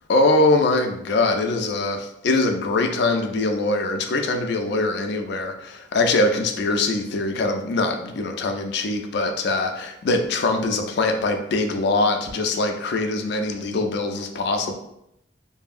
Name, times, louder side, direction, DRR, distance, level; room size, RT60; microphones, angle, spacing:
voice 1, 0.1-14.7, left 2 dB, 60° left, 4 dB, 0.4 m, -22 dB
2.6 x 2.6 x 2.4 m, 0.80 s
head